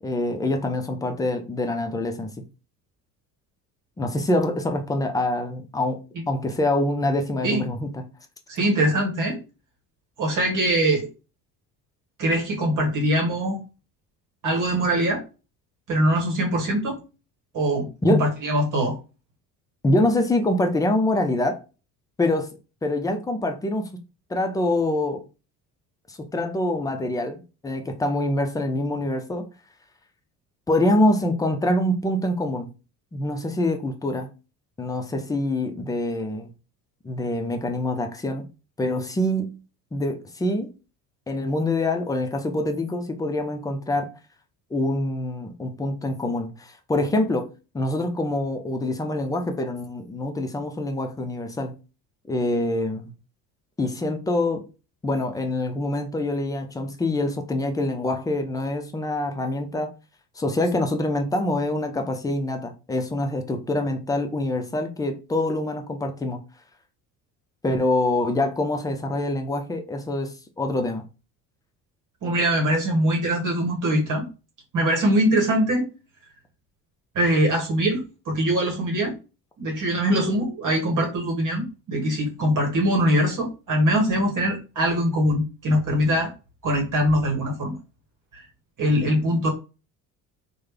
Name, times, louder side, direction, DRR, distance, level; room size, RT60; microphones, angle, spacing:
voice 1, 0.0-2.5 4.0-8.1 18.0-18.3 19.8-21.6 22.2-24.0 24.3-25.3 26.1-29.5 30.7-32.7 33.1-34.3 34.8-36.5 37.0-38.5 38.8-39.6 39.9-40.7 41.3-44.1 44.7-51.8 52.3-53.1 53.8-54.7 55.0-59.9 60.4-66.4 67.6-71.0, left 1 dB, 10° left, 0.4 m, -25 dB
voice 2, 8.5-9.4 10.2-11.1 12.2-13.6 14.4-15.2 15.9-17.0 17.5-19.0 72.2-74.3 74.7-75.9 77.1-79.2 79.6-86.3 86.6-87.8 88.3-88.5 88.8-89.5, equal, 40° right, 1.2 m, -22 dB
3.2 x 2.2 x 3.4 m
figure-of-eight pair, 55°, 49 cm